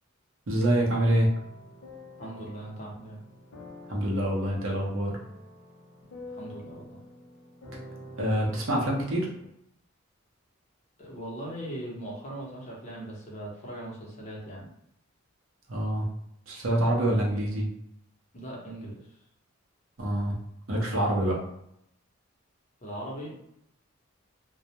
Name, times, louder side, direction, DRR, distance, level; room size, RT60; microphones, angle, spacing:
voice 1, 0.5-1.3 3.9-5.1 8.2-9.3 15.7-16.1 16.5-17.7 20.0-20.3 20.7-21.4, right 1 dB, 70° right, -2 dB, 0.7 m, -26 dB
sound 1, 0.9-9.5, left 1 dB, 85° left, 0.7 m, -47 dB
voice 2, 2.2-3.2 6.3-7.0 11.0-14.7 18.3-19.0 22.8-23.3, right 1 dB, 35° left, -4 dB, 0.7 m, -39 dB
2.2 x 2.0 x 2.8 m, 0.76 s
head